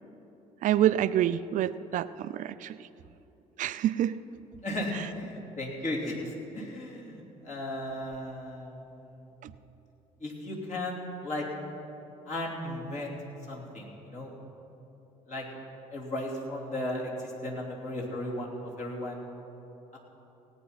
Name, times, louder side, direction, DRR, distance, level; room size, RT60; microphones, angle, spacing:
voice 1, 0.6-2.8 3.6-4.1 9.4-9.5, right 11 dB, 45° right, 15 dB, 0.5 m, -27 dB
voice 2, 4.6-9.2 10.2-11.5 12.2-13.2 13.5-14.4 15.3-15.5 15.9-19.2 19.9-20.0, left 1 dB, 40° left, -3 dB, 3.1 m, -36 dB
17.0 x 9.1 x 5.8 m, 3.0 s
figure-of-eight pair, 50°, 18 cm